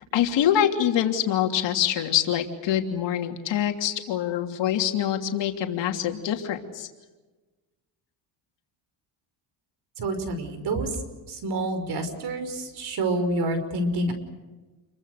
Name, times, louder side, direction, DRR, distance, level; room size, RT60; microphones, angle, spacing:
voice 1, 0.1-6.9, left 10 dB, 70° left, 4 dB, 3.1 m, -25 dB
voice 2, 10.0-10.9 11.3-14.1, right 2 dB, 55° right, 9 dB, 5.6 m, -28 dB
29.5 x 23.5 x 6.7 m, 1.2 s
cardioid pair, 120°, 45 cm